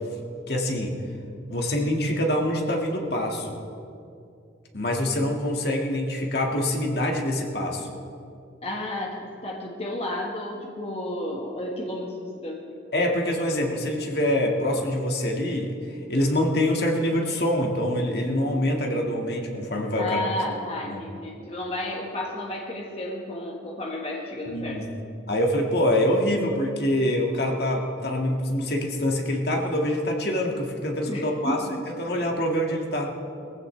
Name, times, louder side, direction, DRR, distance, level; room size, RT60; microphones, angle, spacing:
voice 1, 0.5-1.0 1.5-3.6 4.7-8.0 12.9-15.7 16.1-20.2 20.9-21.0 24.5-24.9 25.3-31.6 32.0-33.2, left 1 dB, 55° left, 0 dB, 1.8 m, -25 dB
voice 2, 8.6-12.6 20.0-24.8 31.1-31.9, left 1 dB, 30° left, -2 dB, 1.5 m, -32 dB
21.0 x 15.5 x 3.3 m, 2.5 s
head